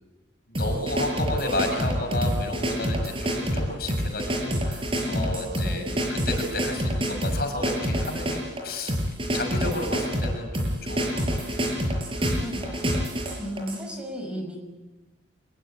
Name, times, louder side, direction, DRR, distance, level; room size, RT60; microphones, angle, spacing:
voice 1, 0.5-9.0 9.3-11.6, left 2 dB, 55° left, 4 dB, 6.6 m, -32 dB
sound 1, 0.5-13.8, equal, 30° right, 6.6 m, -27 dB
voice 2, 5.6-6.0 12.2-12.9 13.4-14.6, equal, 5° right, 2 dB, 5.8 m, -35 dB
26.0 x 22.5 x 8.9 m, 1.1 s
head